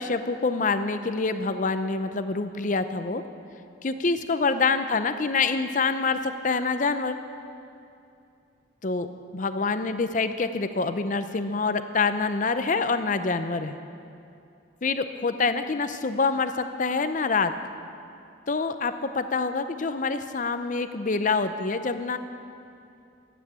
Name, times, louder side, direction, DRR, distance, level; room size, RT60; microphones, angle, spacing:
voice 1, 0.0-3.2 3.8-7.2 8.8-13.8 14.8-17.5 18.5-22.2, left 4 dB, 40° left, 10 dB, 0.5 m, -26 dB
13.0 x 9.0 x 8.1 m, 2.6 s
head